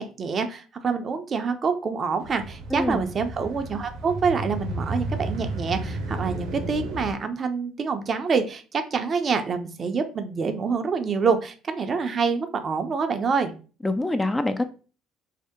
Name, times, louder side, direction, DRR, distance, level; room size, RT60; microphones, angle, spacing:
voice 1, 0.0-13.5, right 5 dB, 40° right, 7 dB, 0.5 m, -26 dB
sound 1, 2.2-7.1, right 2 dB, 70° right, 0.8 m, -32 dB
voice 2, 2.7-3.0 13.8-14.7, left 2 dB, 15° left, 9 dB, 0.3 m, -25 dB
2.7 x 2.0 x 3.6 m, 0.36 s
hypercardioid pair, 65°, 0 cm